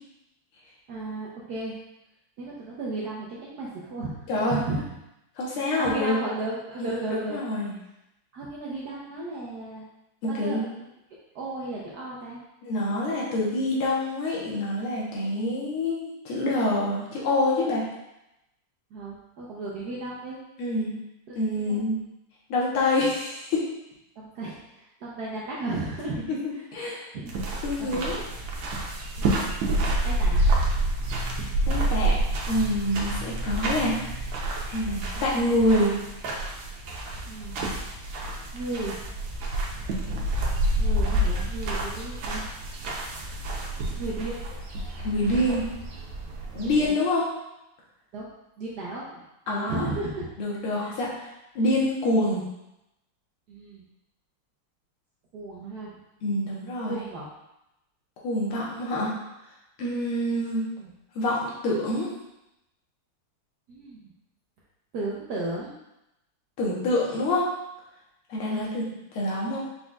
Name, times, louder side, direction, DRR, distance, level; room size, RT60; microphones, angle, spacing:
voice 1, 0.9-1.8 2.4-4.9 5.8-7.4 8.3-9.8 10.3-10.6 11.3-12.4 18.9-20.4 21.3-21.4 21.7-21.8 24.2-26.2 26.5-26.6 27.1-27.3 27.8-28.1 29.2-29.6 30.0-30.4 37.3-37.6 38.5-39.0 40.8-42.5 44.0-44.4 46.8-46.9 48.1-48.3 48.6-50.3 50.8-50.9 53.5-53.8 55.3-55.9 56.9-57.3 60.8-60.9 63.7-64.1 64.9-65.8 68.5-68.7, right 2 dB, 70° right, -5 dB, 1.0 m, -34 dB
voice 2, 4.3-4.6 5.4-6.2 6.8-7.7 10.4-10.7 12.6-17.8 20.6-20.9 21.4-22.0 22.5-23.7 26.7-27.1 27.6-28.2 31.7-32.2 32.5-34.2 34.7-35.9 45.0-45.7 46.5-47.3 49.5-49.8 50.4-51.2 51.6-52.4 56.2-57.0 58.2-59.1 59.8-60.6 61.2-62.1 66.6-67.5 68.3-68.8 69.1-69.6, left 1 dB, 80° left, -4 dB, 2.0 m, -26 dB
sound 1, 27.3-46.9, right 1 dB, 85° right, 1.7 m, -28 dB
4.9 x 4.1 x 2.3 m, 0.88 s
omnidirectional pair, 2.4 m